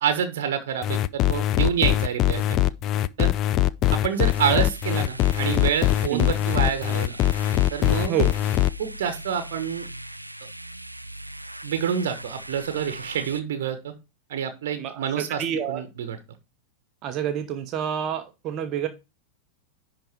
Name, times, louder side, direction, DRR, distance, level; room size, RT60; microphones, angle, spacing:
voice 1, 0.0-2.6 3.2-3.3 3.9-7.2 7.7-8.1 8.8-9.9 11.6-13.9 14.3-16.2, right 8 dB, 55° right, 9 dB, 1.2 m, -27 dB
sound 1, 0.8-8.7, left 13 dB, 35° left, 0.4 m, -22 dB
sound 2, 4.0-13.4, right 1 dB, 85° right, 0.5 m, -40 dB
voice 2, 14.8-15.8 17.0-18.9, right 9 dB, 35° right, 7 dB, 1.0 m, -28 dB
10.5 x 3.9 x 4.7 m, 0.27 s
figure-of-eight pair, 90°, 0 cm